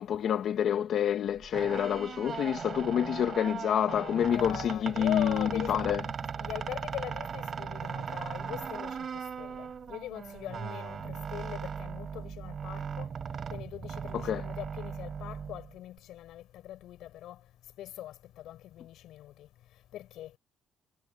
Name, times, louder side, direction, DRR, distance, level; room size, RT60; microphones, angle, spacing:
voice 1, 0.0-6.0 14.1-14.4, left 9 dB, 55° left, 1.3 m, -28 dB
sound 1, 1.4-16.0, right 7 dB, 35° right, 6.9 m, -38 dB
voice 2, 4.3-5.8 6.4-13.1 13.5-17.4 17.8-19.5 19.9-20.3, left 13 dB, 75° left, 5.9 m, -41 dB
cardioid pair, 150°, 0 cm